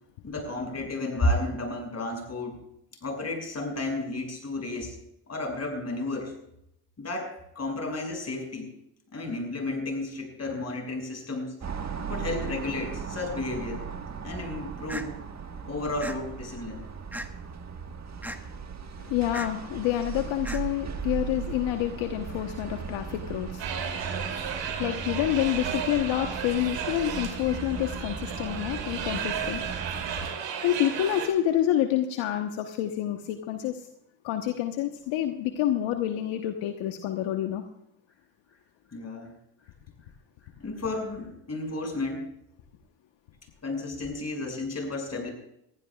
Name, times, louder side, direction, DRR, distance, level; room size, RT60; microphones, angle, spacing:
voice 1, 0.2-2.6 3.0-4.9 5.3-6.3 7.0-8.8 9.1-11.6 12.1-13.8 14.2-15.2 15.6-16.8 38.9-39.4 40.6-42.3 43.6-45.3, left 2 dB, 30° left, 2 dB, 6.4 m, -32 dB
sound 1, 11.6-30.3, right 6 dB, 35° right, 1.6 m, -37 dB
sound 2, 14.9-15.1 16.0-16.2 17.1-17.5 18.2-18.4 19.3-19.5 20.4-20.6, right 1 dB, 5° right, 1.4 m, -36 dB
voice 2, 19.0-29.7 30.6-33.8 34.2-37.6, left 12 dB, 75° left, 5 dB, 1.2 m, -28 dB
sound 3, 23.6-31.3, right 7 dB, 65° right, 3.2 m, -34 dB
22.0 x 15.0 x 2.4 m, 0.77 s
supercardioid pair, 70°, 47 cm